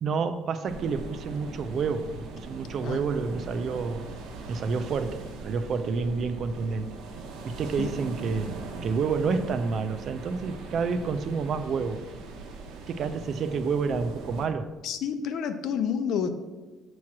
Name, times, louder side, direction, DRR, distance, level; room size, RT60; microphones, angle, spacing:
voice 1, 0.0-4.0 4.5-7.0 7.4-12.1 12.9-14.7, right 5 dB, 45° right, 10 dB, 0.4 m, -29 dB
sound 1, 0.6-14.5, right 3 dB, 85° right, 0.8 m, -40 dB
voice 2, 14.8-16.3, left 7 dB, 65° left, 9 dB, 0.5 m, -29 dB
7.3 x 3.0 x 5.9 m, 1.2 s
cardioid pair, 145°, 0 cm